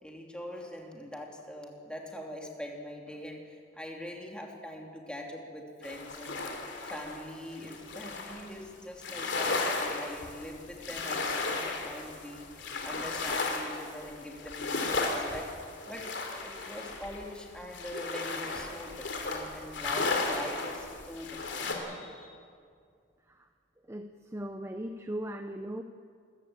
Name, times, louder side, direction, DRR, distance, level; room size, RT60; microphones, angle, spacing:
voice 1, 0.0-6.4 6.8-12.5 12.8-15.5 15.9-22.4, left 1 dB, 5° left, 0 dB, 2.9 m, -43 dB
sound 1, 5.8-8.5 9.0-21.8, left 3 dB, 65° left, 3.3 m, -35 dB
voice 2, 23.9-25.8, right 1 dB, 15° right, 7 dB, 0.7 m, -38 dB
26.5 x 14.5 x 8.9 m, 2.2 s
head